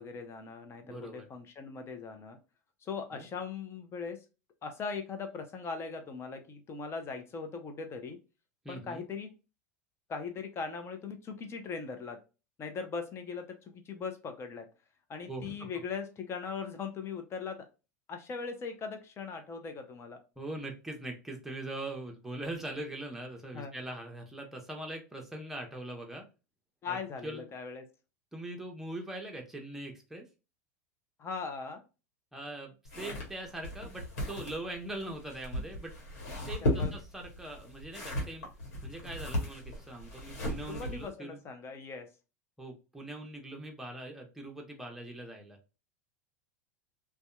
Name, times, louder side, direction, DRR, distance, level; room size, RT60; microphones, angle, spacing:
voice 1, 0.0-2.4 2.8-4.2 4.6-8.2 8.7-9.3 10.1-12.2 12.6-14.7 15.1-17.7 18.1-20.2 23.5-23.7 26.8-27.8 31.2-31.8 36.6-36.9 40.7-42.1, left 5 dB, 30° left, 6 dB, 0.7 m, -40 dB
voice 2, 0.8-1.3 3.1-3.3 8.6-9.0 15.3-15.6 20.4-26.2 26.9-27.0 27.2-27.5 28.3-30.3 32.3-35.9 36.4-38.5 38.8-41.4 42.6-45.6, right 1 dB, 5° right, 1 dB, 0.8 m, -42 dB
sound 1, 32.8-41.1, left 1 dB, 75° left, 1.2 m, -36 dB
2.7 x 2.2 x 2.3 m, 0.30 s
hypercardioid pair, 90°, 8 cm